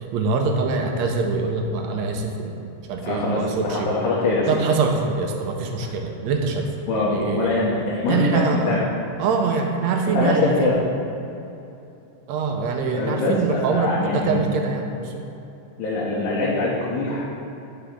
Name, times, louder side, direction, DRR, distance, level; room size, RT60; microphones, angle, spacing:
voice 1, 0.1-3.9 4.5-6.7 6.9-7.6 8.1-8.8 9.2-10.7 12.3-15.2, right 4 dB, 75° right, 3 dB, 1.8 m, -24 dB
voice 2, 3.0-4.7 5.8-5.9 6.9-8.9 10.1-10.9 12.9-14.5 15.8-17.3, left 2 dB, 90° left, -6 dB, 2.4 m, -23 dB
10.0 x 5.0 x 3.6 m, 2.8 s
omnidirectional pair, 3.3 m